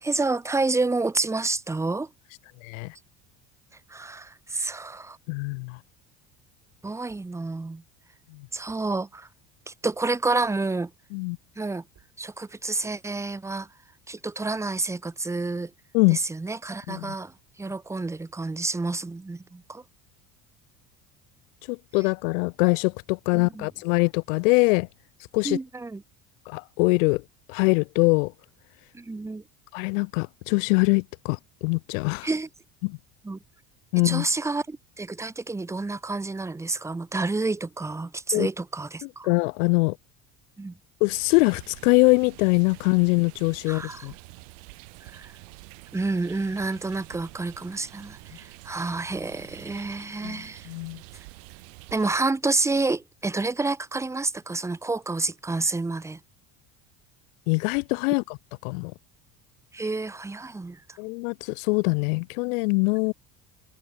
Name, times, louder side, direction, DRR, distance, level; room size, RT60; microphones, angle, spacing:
voice 1, 0.0-2.1 3.9-5.2 6.8-7.8 8.5-9.3 9.7-10.9 11.6-11.8 12.2-13.7 14.1-15.7 16.1-17.3 17.6-19.8 23.3-23.7 25.4-26.0 28.9-29.4 32.2-32.5 33.2-33.4 34.0-39.4 40.6-40.8 43.7-44.1 45.0-45.3 45.9-50.7 51.9-56.2 59.7-61.0, right 3 dB, 10° right, 0.6 m, -29 dB
voice 2, 5.3-5.8 11.1-11.4 15.9-16.2 16.9-17.1 21.7-24.9 25.3-25.6 26.5-27.2 27.5-28.3 29.7-31.4 31.6-32.3 32.8-33.0 33.9-34.3 38.3-38.5 39.2-40.0 41.0-44.1 50.2-51.0 57.5-58.2 58.6-58.9 61.0-63.1, left 29 dB, 90° left, 0.5 m, -23 dB
sound 1, 7.1-7.5 7.9-8.0 8.7-9.1 10.4-10.7 11.9-12.2, right 8 dB, 35° right, 4.0 m, -62 dB
sound 2, 41.1-52.2, right 30 dB, 85° right, 0.8 m, -47 dB
supercardioid pair, 100°, 38 cm